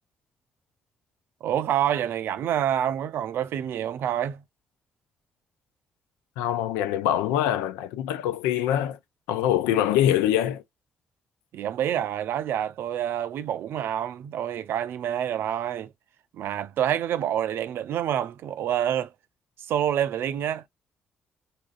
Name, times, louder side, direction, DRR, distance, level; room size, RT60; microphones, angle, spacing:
voice 1, 1.4-4.4 11.5-15.9 16.3-19.1 19.7-20.7, right 10 dB, 70° right, 0.4 m, -27 dB
voice 2, 6.4-9.0 9.3-10.6, left 11 dB, 85° left, 0.3 m, -24 dB
4.0 x 2.4 x 2.4 m
hypercardioid pair, 45°, 4 cm